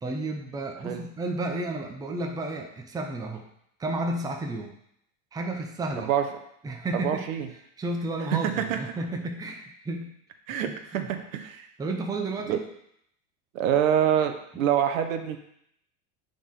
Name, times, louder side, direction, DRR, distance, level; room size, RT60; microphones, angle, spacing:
voice 1, 0.0-3.4 3.8-4.7 5.3-6.1 6.6-7.2 7.8-10.1 10.7-11.1 11.8-12.6, right 2 dB, 10° right, 2 dB, 0.7 m, -32 dB
voice 2, 7.0-7.5 8.3-8.8 10.5-11.7 12.5-12.6 13.5-15.4, right 9 dB, 85° right, 7 dB, 1.0 m, -25 dB
8.4 x 3.9 x 3.7 m, 0.72 s
supercardioid pair, 135°, 39 cm